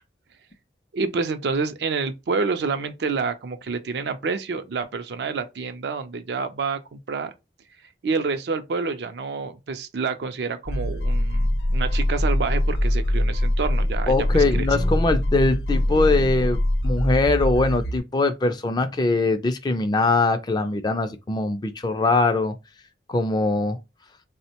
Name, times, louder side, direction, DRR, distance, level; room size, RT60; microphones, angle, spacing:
voice 1, 0.9-7.3 8.0-14.7, right 4 dB, 70° right, 0.4 m, -28 dB
sound 1, 10.7-18.0, left 1 dB, 80° left, 0.7 m, -23 dB
voice 2, 14.1-22.5 23.1-23.8, left 3 dB, 25° left, 0.3 m, -22 dB
3.4 x 2.1 x 2.8 m
head